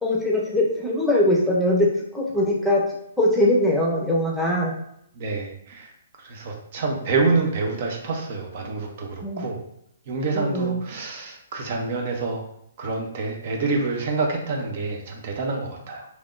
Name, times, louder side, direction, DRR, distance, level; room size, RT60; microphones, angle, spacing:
voice 1, 0.0-1.9 2.1-2.8 3.2-4.7 9.2-9.4 10.3-10.8, left 1 dB, ahead, -4 dB, 0.8 m, -21 dB
voice 2, 5.2-5.9 6.2-9.6 10.1-12.4 12.8-16.1, right 3 dB, 50° right, 1 dB, 0.7 m, -27 dB
3.4 x 2.9 x 2.5 m, 0.75 s
figure-of-eight pair, 130°, 0 cm